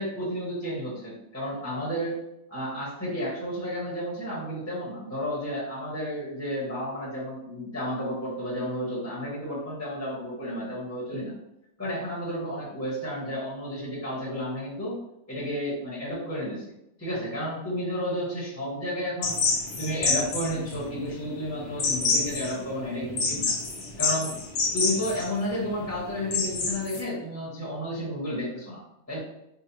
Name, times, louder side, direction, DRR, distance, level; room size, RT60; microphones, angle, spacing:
voice 1, 0.0-2.2 2.5-11.3 11.8-14.9 15.3-16.6 17.0-19.4 19.8-23.5 24.0-24.3 24.7-28.8 29.1-29.2, equal, 15° left, -8 dB, 1.0 m, -32 dB
sound 1, 19.2-27.0, left 4 dB, 70° left, 1.0 m, -28 dB
4.0 x 2.3 x 2.7 m, 0.83 s
omnidirectional pair, 1.2 m